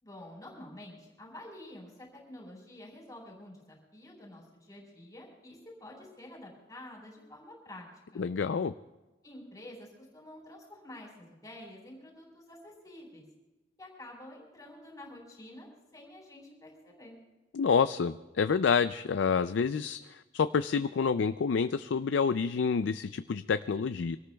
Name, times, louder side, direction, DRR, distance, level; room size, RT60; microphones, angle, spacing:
voice 1, 0.0-7.9 8.1-8.3 9.2-13.2 13.8-17.2, left 1 dB, 20° left, -2 dB, 4.6 m, -49 dB
voice 2, 8.2-8.7 17.5-24.2, left 5 dB, 80° left, 11 dB, 0.4 m, -28 dB
25.0 x 18.0 x 2.3 m, 1.1 s
head